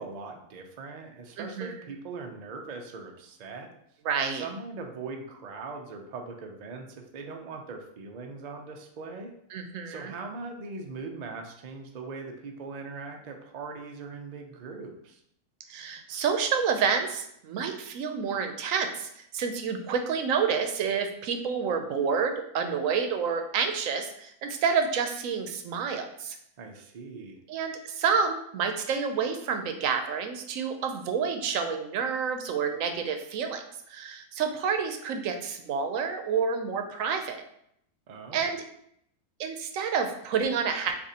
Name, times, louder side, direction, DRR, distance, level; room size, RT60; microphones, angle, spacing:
voice 1, 0.0-3.7 4.3-9.3 9.8-15.2 26.6-27.4 38.1-38.5, right 4 dB, 85° right, 3 dB, 0.3 m, -40 dB
voice 2, 1.4-1.7 4.1-4.4 9.5-10.1 15.7-26.4 27.5-33.6 33.9-37.4 38.3-38.6 39.4-40.9, right 6 dB, 70° right, 6 dB, 0.9 m, -29 dB
6.7 x 2.6 x 2.8 m, 0.72 s
omnidirectional pair, 1.5 m